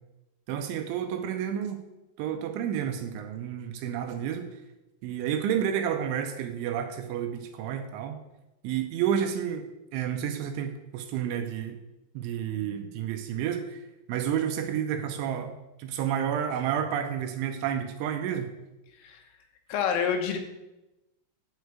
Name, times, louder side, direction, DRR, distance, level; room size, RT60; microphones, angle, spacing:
voice 1, 0.5-1.8 2.2-4.5 5.0-8.2 8.6-9.7 9.9-11.8 12.1-13.8 14.1-18.5, right 9 dB, 80° right, 5 dB, 3.1 m, -30 dB
voice 2, 19.7-20.4, left 7 dB, 80° left, 4 dB, 3.7 m, -27 dB
10.5 x 4.9 x 8.0 m, 0.97 s
omnidirectional pair, 5.8 m